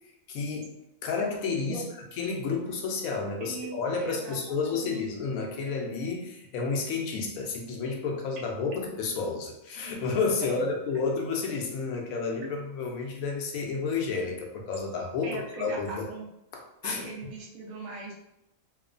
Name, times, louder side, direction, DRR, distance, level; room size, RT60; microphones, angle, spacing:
voice 1, 0.3-0.7 1.0-1.8 2.2-16.1 16.5-17.1, left 4 dB, 90° left, 1 dB, 1.0 m, -31 dB
voice 2, 3.4-5.3 10.4-10.7 10.9-11.0 15.2-16.3 16.8-18.1, right 3 dB, 80° right, -1 dB, 1.0 m, -40 dB
3.0 x 2.1 x 2.4 m, 0.85 s
omnidirectional pair, 1.4 m